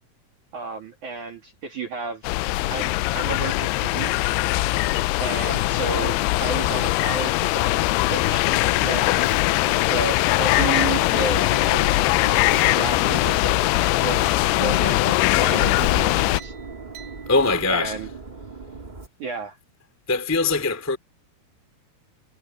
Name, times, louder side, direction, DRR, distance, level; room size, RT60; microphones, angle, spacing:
voice 1, 0.5-2.4 2.7-4.3 5.2-7.8 8.1-8.5 8.8-9.2 9.9-12.0 12.5-13.6 14.0-16.5 17.7-18.1 19.2-19.6, right 5 dB, 50° right, 3.6 m, -32 dB
sound 1, 2.2-16.4, left 19 dB, 85° left, 2.4 m, -21 dB
sound 2, 8.0-19.1, right 3 dB, 30° right, 0.8 m, -39 dB
sound 3, 8.5-9.1 9.4-9.9 10.5-12.9 13.8-15.7 16.4-17.8, right 8 dB, 75° right, 7.0 m, -49 dB
voice 2, 17.2-18.1 20.1-21.0, left 3 dB, 5° left, 1.1 m, -22 dB
omnidirectional pair, 5.1 m